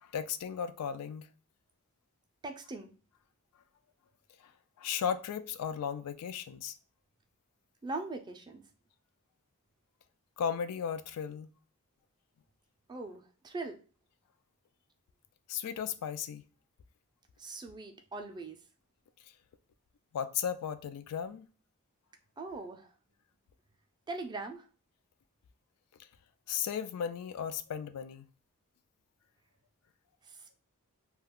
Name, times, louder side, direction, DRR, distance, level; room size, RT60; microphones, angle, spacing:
voice 1, 0.0-1.3 4.8-6.8 10.4-11.5 15.5-16.4 20.1-21.5 26.5-28.3, left 8 dB, 90° left, 0.3 m, -35 dB
voice 2, 2.4-2.9 7.8-8.6 12.9-13.8 17.4-18.6 22.4-22.9 24.1-24.7 30.2-30.6, right 3 dB, 20° right, 0.4 m, -41 dB
2.3 x 2.2 x 3.4 m
head